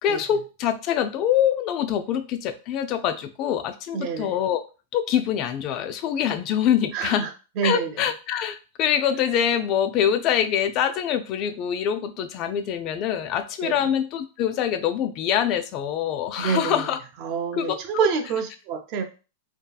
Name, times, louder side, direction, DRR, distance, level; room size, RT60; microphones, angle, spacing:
voice 1, 0.0-4.6 4.9-7.3 7.6-17.0 17.5-18.1, left 9 dB, 35° left, 9 dB, 0.3 m, -24 dB
voice 2, 3.9-4.3 6.9-7.3 7.6-7.9 13.6-13.7 16.4-16.9 17.2-19.0, right 6 dB, 40° right, 5 dB, 0.5 m, -27 dB
2.7 x 2.3 x 2.2 m, 0.33 s
supercardioid pair, 145°, 0 cm